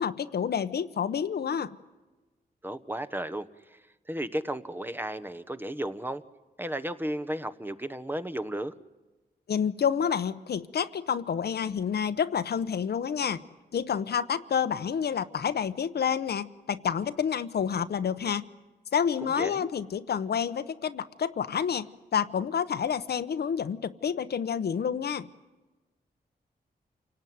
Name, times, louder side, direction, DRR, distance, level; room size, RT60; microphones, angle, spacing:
voice 1, 0.0-1.8 9.5-13.4 13.7-18.4 18.9-21.9 22.1-25.3, left 7 dB, 70° left, 12 dB, 1.0 m, -29 dB
voice 2, 2.6-3.8 4.1-6.2 6.6-8.7 19.2-19.7, right 1 dB, 10° right, 9 dB, 1.1 m, -34 dB
28.0 x 18.0 x 9.4 m, 1.2 s
wide cardioid pair, 95°, 17 cm